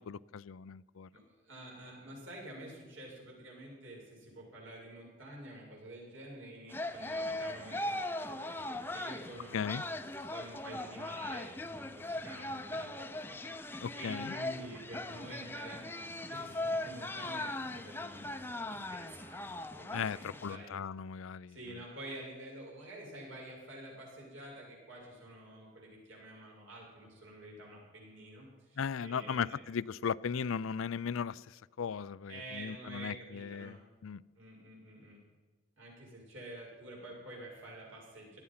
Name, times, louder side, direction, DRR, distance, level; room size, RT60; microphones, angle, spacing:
voice 1, 0.0-1.1 9.5-9.8 13.8-14.3 19.9-21.8 28.8-33.8 34.0-34.2, left 6 dB, 85° left, 0.4 m, -37 dB
voice 2, 1.1-9.9 10.1-20.8 21.5-29.6 32.3-33.8 34.3-35.2 35.8-38.4, right 1 dB, 75° right, 7.0 m, -49 dB
sound 1, 6.7-20.6, left 1 dB, 10° left, 0.6 m, -39 dB
18.0 x 12.5 x 5.7 m
head